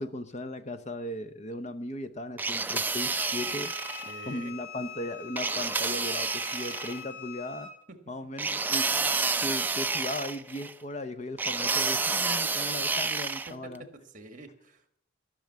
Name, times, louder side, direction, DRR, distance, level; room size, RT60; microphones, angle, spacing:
voice 1, 0.0-3.7 4.3-7.7 8.1-8.9 9.4-13.8, left 1 dB, 35° left, 12 dB, 0.7 m, -37 dB
sound 1, 2.4-4.1 5.4-7.0 8.4-10.7 11.4-13.5, right 4 dB, 10° right, 0.4 m, -29 dB
Wind instrument woodwind instrument, 3.1-7.8, left 5 dB, 85° left, 3.6 m, -43 dB
voice 2, 3.9-4.5 7.9-8.0 13.5-15.0, right 2 dB, 40° right, 9 dB, 1.5 m, -47 dB
14.0 x 6.3 x 9.3 m, 0.68 s
head